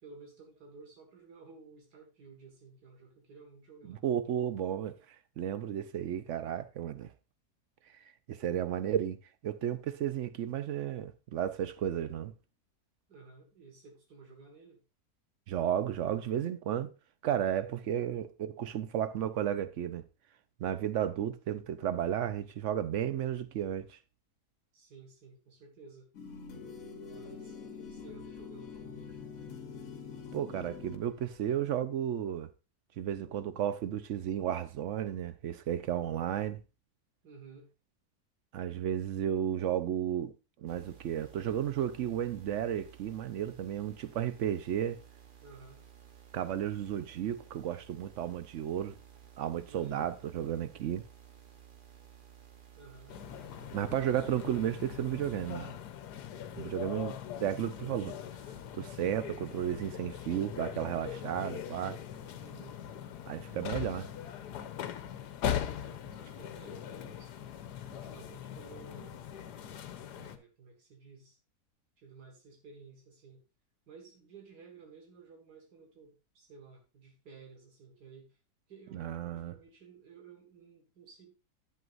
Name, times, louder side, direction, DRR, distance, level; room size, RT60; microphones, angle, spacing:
voice 1, 0.0-4.0 13.1-14.8 17.9-18.1 24.7-26.1 27.0-29.2 37.2-37.7 45.4-45.8 49.7-50.1 52.8-53.2 62.4-62.8 65.5-67.3 67.9-69.2 70.1-71.4 72.0-73.4 73.9-78.4 78.7-81.3, right 4 dB, 85° right, 2.2 m, -54 dB
voice 2, 3.9-5.0 5.4-7.1 8.3-9.2 9.4-12.3 15.5-16.9 17.2-20.0 20.6-24.0 30.3-32.5 33.0-36.6 38.5-45.0 46.3-48.9 49.4-51.0 53.7-55.8 56.6-58.1 58.8-62.0 63.3-64.1 78.9-79.5, right 10 dB, 65° right, 0.8 m, -33 dB
sound 1, 26.1-31.5, left 6 dB, 60° left, 1.4 m, -45 dB
sound 2, 40.7-55.7, right 9 dB, 40° right, 1.0 m, -55 dB
sound 3, 53.1-70.4, left 9 dB, 85° left, 1.3 m, -41 dB
11.0 x 7.8 x 2.5 m
omnidirectional pair, 1.7 m